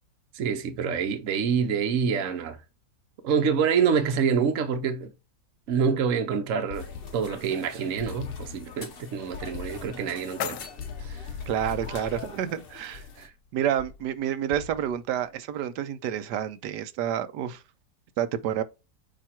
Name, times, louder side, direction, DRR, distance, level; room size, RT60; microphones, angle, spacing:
voice 1, 0.3-2.6 3.2-5.1 5.7-6.9 7.1-10.6 11.0-11.2 13.2-13.3, right 6 dB, 55° right, 1.1 m, -26 dB
sound 1, 6.7-7.6 8.0-8.9 9.3-10.1 10.8-13.3 13.8-14.1 14.5-15.0, left 6 dB, 70° left, 1.2 m, -40 dB
sound 2, 6.7-13.3, left 5 dB, 40° left, 1.0 m, -46 dB
sound 3, 9.6-11.6, left 11 dB, 90° left, 1.3 m, -39 dB
voice 2, 11.5-13.0 13.5-17.6 18.2-18.6, right 10 dB, 85° right, 1.2 m, -29 dB
8.7 x 2.9 x 4.3 m
omnidirectional pair, 1.8 m